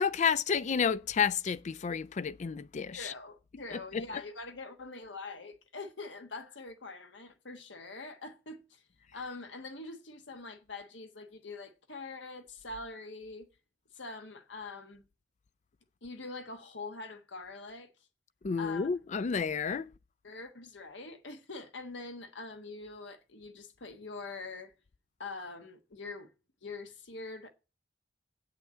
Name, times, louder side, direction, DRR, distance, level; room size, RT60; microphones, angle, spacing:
voice 1, 0.0-3.1 3.7-4.2 18.4-19.9, left 6 dB, 40° left, 0.4 m, -31 dB
voice 2, 2.9-8.8 9.1-13.5 13.9-15.1 16.0-17.9 18.6-18.9 20.2-24.7 25.2-26.3 26.6-27.5, left 3 dB, 70° left, 1.3 m, -44 dB
8.4 x 5.7 x 7.8 m
head